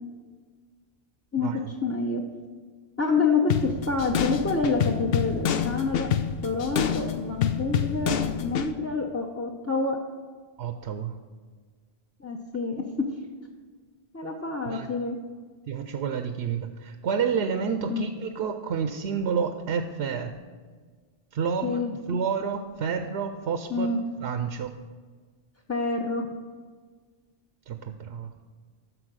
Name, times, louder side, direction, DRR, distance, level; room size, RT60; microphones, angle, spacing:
voice 1, 1.3-2.2 3.0-6.1 6.4-10.0 12.2-13.1 14.1-15.2 17.9-18.0 21.6-21.9 23.7-24.0 25.7-26.3, left 4 dB, 15° left, 1 dB, 0.6 m, -27 dB
sound 1, 3.5-8.7, left 8 dB, 70° left, 0.8 m, -27 dB
voice 2, 10.6-11.2 14.6-14.9 15.7-20.3 21.3-21.8 22.1-23.9 24.2-24.7 27.7-28.3, right 6 dB, 85° right, 7 dB, 0.9 m, -29 dB
13.0 x 4.6 x 6.2 m, 1.5 s
omnidirectional pair, 1.1 m